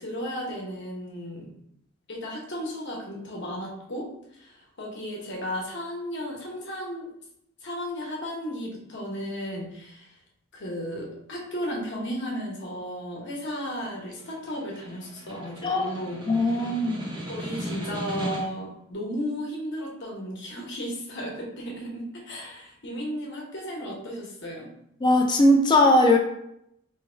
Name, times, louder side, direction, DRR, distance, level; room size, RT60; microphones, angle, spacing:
voice 1, 0.0-1.5 2.1-7.1 7.6-10.1 10.5-16.2 17.3-24.7, equal, 55° left, -1 dB, 1.0 m, -34 dB
Snare drum, 13.8-18.7, equal, 25° right, 0.6 m, -37 dB
voice 2, 15.6-15.9 16.3-17.2 25.0-26.2, left 1 dB, 20° left, 2 dB, 0.4 m, -20 dB
3.2 x 2.3 x 4.3 m, 0.76 s
head